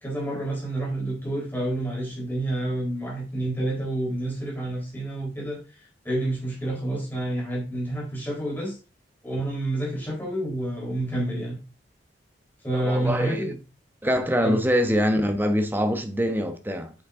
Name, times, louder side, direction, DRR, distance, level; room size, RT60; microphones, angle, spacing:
voice 1, 0.0-5.6 6.0-8.8 9.2-11.6 12.6-13.5 14.4-14.6, right 1 dB, 10° left, 4.2 m, -28 dB
voice 2, 12.7-13.5 14.0-16.9, equal, 10° right, 1.0 m, -24 dB
8.2 x 6.4 x 3.6 m
head